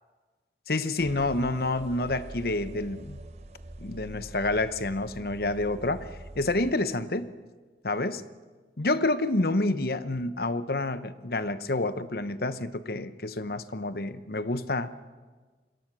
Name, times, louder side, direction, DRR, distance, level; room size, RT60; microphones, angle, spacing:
voice 1, 0.7-3.2 3.8-6.1 6.4-7.3 7.8-8.2 8.8-14.9, left 2 dB, 55° left, 13 dB, 1.0 m, -28 dB
sound 1, 1.0-6.7, right 1 dB, 35° right, 0.9 m, -44 dB
27.0 x 22.5 x 6.2 m, 1.4 s
head